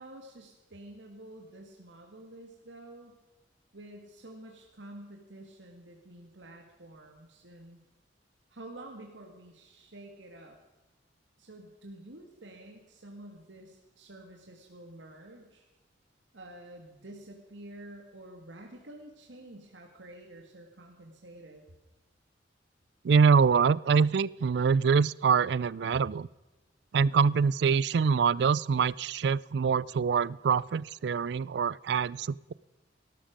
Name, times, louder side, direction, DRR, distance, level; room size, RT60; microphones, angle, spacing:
voice 1, 0.0-3.2 3.7-7.8 8.5-10.6 11.4-15.7 16.3-21.6, right 1 dB, 90° right, 2 dB, 1.9 m, -49 dB
voice 2, 23.0-26.3 26.9-32.5, right 6 dB, 65° right, 23 dB, 0.4 m, -25 dB
18.0 x 12.5 x 5.1 m, 1.1 s
head